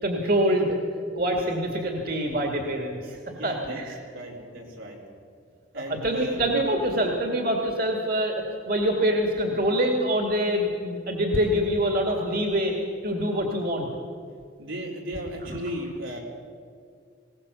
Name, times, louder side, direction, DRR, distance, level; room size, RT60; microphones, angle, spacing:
voice 1, 0.0-0.8 1.2-3.2 3.4-4.0 5.8-12.7 13.0-13.9, equal, 50° right, 1 dB, 2.2 m, -25 dB
voice 2, 3.3-3.8 4.1-5.0 5.7-6.4 14.6-16.2, equal, 90° right, -1 dB, 4.2 m, -35 dB
20.5 x 18.0 x 6.9 m, 2.2 s
head